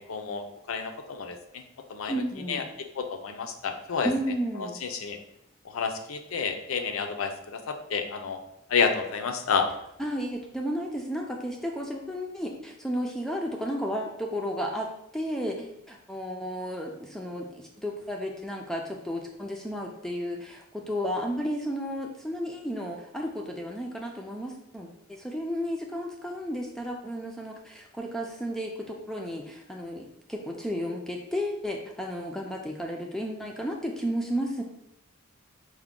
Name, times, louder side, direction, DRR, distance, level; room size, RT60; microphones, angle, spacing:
voice 1, 0.1-1.6 1.9-2.2 2.5-2.6 3.0-4.1 4.6-5.2 5.6-8.4 8.7-9.7, left 5 dB, 70° left, 7 dB, 0.5 m, -30 dB
voice 2, 2.1-2.6 4.0-4.8 10.0-34.6, equal, ahead, 1 dB, 0.3 m, -33 dB
4.6 x 2.1 x 3.7 m, 0.79 s
head